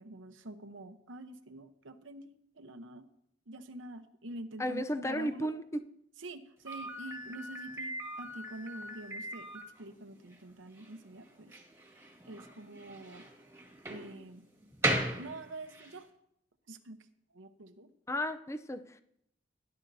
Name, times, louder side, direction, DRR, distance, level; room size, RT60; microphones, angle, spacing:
voice 1, 0.0-3.1 3.5-5.5 6.2-11.6 12.3-13.3 13.9-14.5 15.2-16.1 16.7-17.1 17.3-17.9, right 2 dB, 90° right, 8 dB, 0.9 m, -46 dB
voice 2, 4.6-5.8 18.1-19.0, equal, 15° left, 9 dB, 0.5 m, -34 dB
Slam, 6.6-16.0, right 1 dB, 15° right, 1.7 m, -39 dB
17.5 x 11.5 x 2.7 m, 0.74 s
head